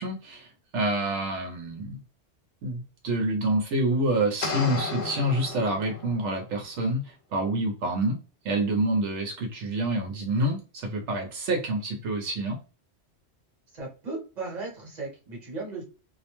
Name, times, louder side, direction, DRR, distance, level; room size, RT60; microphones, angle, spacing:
voice 1, 0.0-2.0 2.6-8.2 8.4-12.6, right 1 dB, 80° right, 1 dB, 0.9 m, -27 dB
sound 1, 4.4-6.3, left 3 dB, 70° left, 0.9 m, -33 dB
voice 2, 13.7-15.8, right 3 dB, 40° right, -1 dB, 1.0 m, -36 dB
2.3 x 2.1 x 2.9 m, 0.34 s
omnidirectional pair, 1.2 m